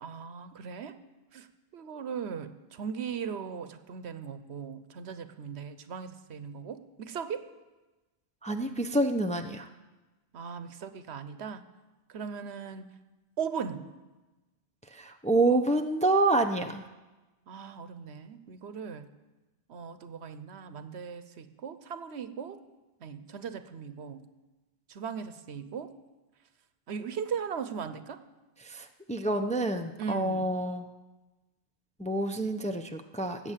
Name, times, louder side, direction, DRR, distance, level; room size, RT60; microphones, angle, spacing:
voice 1, 0.0-0.9 1.3-1.5 1.7-7.5 10.3-11.6 12.1-12.9 13.4-13.8 17.5-19.1 19.7-22.6 23.0-24.2 24.9-25.9 26.9-28.2 30.0-30.5, right 6 dB, 75° right, 11 dB, 1.1 m, -38 dB
voice 2, 8.4-9.7 14.9-16.8 28.6-30.8 32.0-33.5, right 2 dB, 10° left, 5 dB, 0.5 m, -28 dB
17.5 x 7.9 x 7.4 m, 1.1 s
omnidirectional pair, 1.1 m